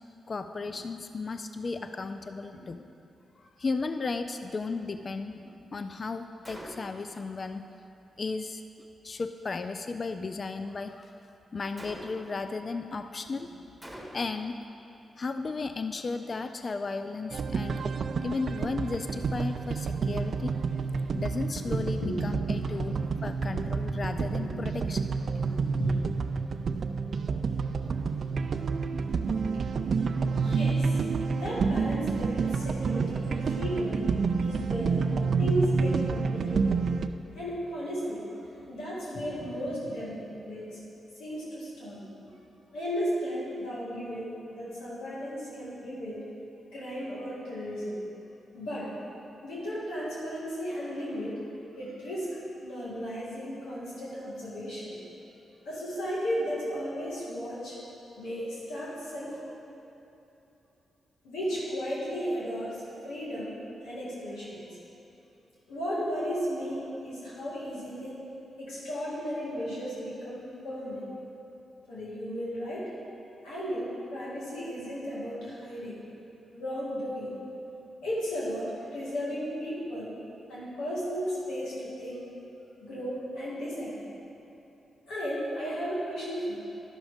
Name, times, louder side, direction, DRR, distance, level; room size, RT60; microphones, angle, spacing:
voice 1, 0.3-2.8 3.6-5.4 5.7-7.7 8.2-8.6 9.0-11.1 11.5-13.5 14.1-14.5 15.2-17.9 18.2-20.6 21.1-25.0, left 4 dB, 45° left, 9 dB, 0.4 m, -34 dB
Gunshot gunfire, 6.4-7.1 11.8-12.4 13.8-14.5, equal, ahead, 1.6 m, -44 dB
sound 1, 17.3-37.1, right 5 dB, 60° right, 0.4 m, -29 dB
voice 2, 21.6-22.2 22.8-22.9 24.3-24.6 25.4-26.0 28.1-28.2 30.3-30.9 31.2-34.0 34.4-35.0 35.4-36.8 37.3-40.8 41.2-42.3 42.7-46.2 46.7-48.0 48.5-49.0 49.4-51.4 51.8-52.3 52.6-55.0 55.6-57.8 58.2-59.4 61.2-63.6 63.8-64.7 65.7-68.1 68.6-71.1 71.9-72.9 73.4-76.0 76.5-77.3 78.0-80.1 80.5-82.3 82.8-84.1 85.1-86.5, equal, 90° left, -7 dB, 2.3 m, -35 dB
11.5 x 6.2 x 5.0 m, 2.9 s
cardioid pair, 60°, 0 cm